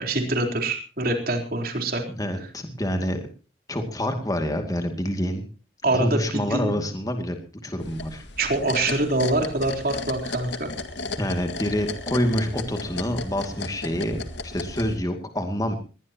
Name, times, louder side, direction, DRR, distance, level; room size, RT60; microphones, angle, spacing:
voice 1, 0.0-2.0 5.8-6.8 8.4-10.7, right 2 dB, 50° right, 3 dB, 4.0 m, -25 dB
voice 2, 2.2-3.2 3.7-5.4 5.9-8.3 11.2-15.8, equal, 20° left, 5 dB, 2.4 m, -27 dB
sound 1, 7.8-15.0, left 3 dB, 75° left, 2.0 m, -34 dB
21.0 x 19.5 x 3.0 m, 0.35 s
head